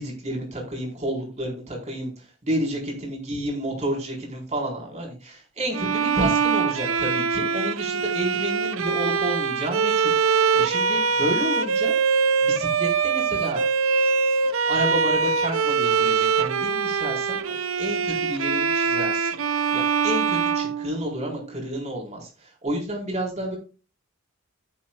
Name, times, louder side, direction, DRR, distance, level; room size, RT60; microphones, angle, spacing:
voice 1, 0.0-11.9 12.4-13.6 14.6-19.3 19.7-23.6, right 1 dB, 35° right, -1 dB, 4.2 m, -30 dB
Bowed string instrument, 5.7-21.5, right 5 dB, 75° right, 0.6 m, -23 dB
15.5 x 7.3 x 2.4 m, 0.33 s
head